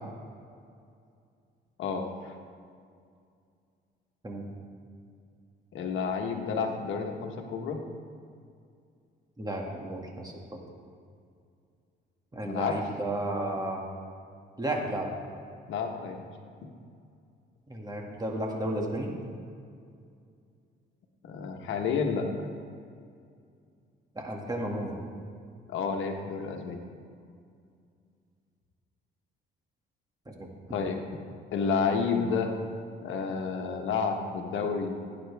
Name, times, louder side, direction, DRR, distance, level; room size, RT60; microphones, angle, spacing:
voice 1, 1.8-2.3 5.7-7.8 12.4-12.8 15.7-16.3 16.6-16.7 21.2-22.5 25.7-26.8 30.7-31.0 31.5-32.5 33.0-35.0, left 5 dB, 80° left, 3 dB, 1.3 m, -30 dB
voice 2, 9.4-10.6 12.3-13.8 14.6-15.1 17.7-19.1 24.2-25.0 30.3-30.5, right 1 dB, 20° right, 0 dB, 2.1 m, -33 dB
17.5 x 9.4 x 3.5 m, 2.3 s
cardioid pair, 90°, 20 cm